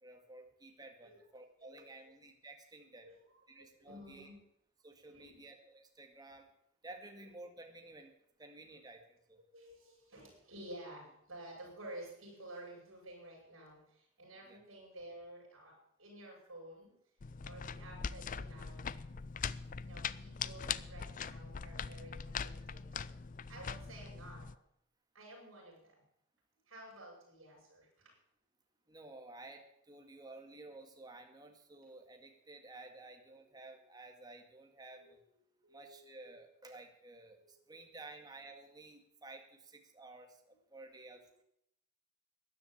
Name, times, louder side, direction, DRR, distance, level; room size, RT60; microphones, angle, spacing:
voice 1, 0.0-3.1 3.5-4.3 4.8-6.5 6.8-8.1 8.4-9.4 14.5-14.6 28.9-35.2 35.7-41.2, right 2 dB, 20° right, 4 dB, 2.0 m, -53 dB
voice 2, 1.6-2.2 3.0-4.4 5.1-5.4 7.0-7.1 9.5-16.9 17.4-19.0 19.8-23.2 23.5-24.5 25.1-26.0 26.7-28.1 33.2-33.9 34.9-36.2 37.3-37.6 40.8-41.3, right 1 dB, 75° right, -2 dB, 6.9 m, -53 dB
sound 1, 17.2-24.5, left 6 dB, 40° left, 0.5 m, -42 dB
14.0 x 10.5 x 8.6 m, 0.72 s
head